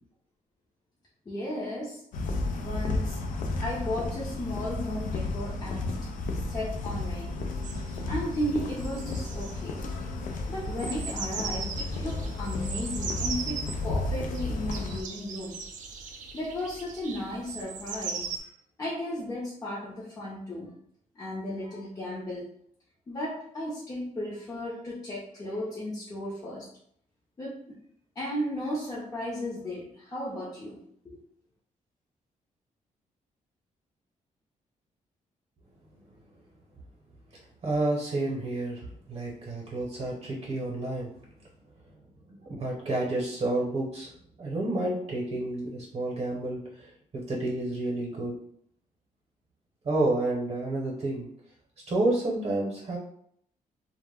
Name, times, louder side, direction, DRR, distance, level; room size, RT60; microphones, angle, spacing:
voice 1, 1.3-2.0 2.6-3.2 3.5-5.9 6.5-7.4 8.1-9.8 10.5-15.6 16.3-18.5 18.8-20.7 21.1-22.5 23.1-26.7 27.4-27.8 28.2-31.2, left 1 dB, 25° left, -6 dB, 0.6 m, -35 dB
sound 1, 2.1-15.0, left 2 dB, 75° left, 0.4 m, -33 dB
sound 2, 7.1-10.3, left 5 dB, 50° left, 0.9 m, -48 dB
sound 3, 7.6-18.4, right 5 dB, 65° right, 0.5 m, -39 dB
voice 2, 37.6-41.1 42.3-44.1 44.4-48.3 49.8-51.3 51.9-53.0, right 2 dB, 45° right, -2 dB, 0.8 m, -30 dB
2.1 x 2.1 x 3.4 m, 0.67 s
cardioid pair, 120°, 14 cm